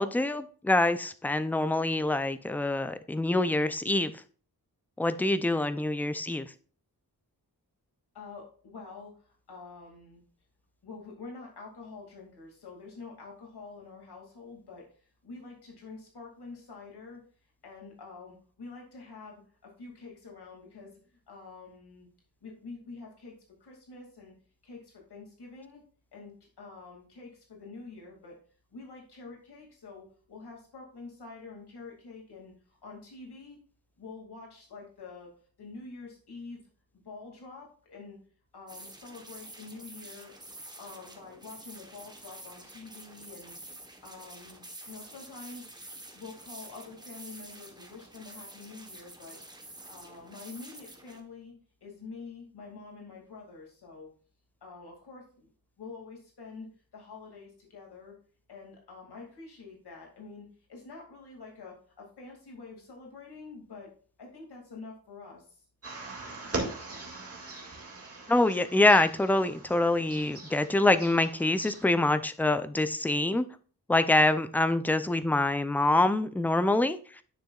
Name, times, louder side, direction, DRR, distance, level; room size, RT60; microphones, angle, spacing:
voice 1, 0.0-4.1 5.0-6.5 68.3-73.4 73.9-77.0, left 2 dB, 5° left, 11 dB, 0.3 m, -25 dB
voice 2, 8.1-10.2 10.8-17.2 17.6-22.1 22.4-23.3 23.6-24.3 24.6-25.8 26.1-28.3 28.7-33.6 34.0-35.3 35.6-36.6 36.9-38.2 38.5-40.4 40.8-45.7 46.1-51.5 51.8-54.1 54.6-55.5 55.8-58.2 58.5-63.9 64.2-65.6, left 4 dB, 85° left, -1 dB, 2.4 m, -47 dB
sound 1, 38.7-51.2, right 1 dB, 10° right, 1.0 m, -48 dB
sound 2, 65.8-71.8, right 2 dB, 35° right, 1.9 m, -40 dB
9.9 x 6.4 x 2.4 m, 0.41 s
wide cardioid pair, 165°, 38 cm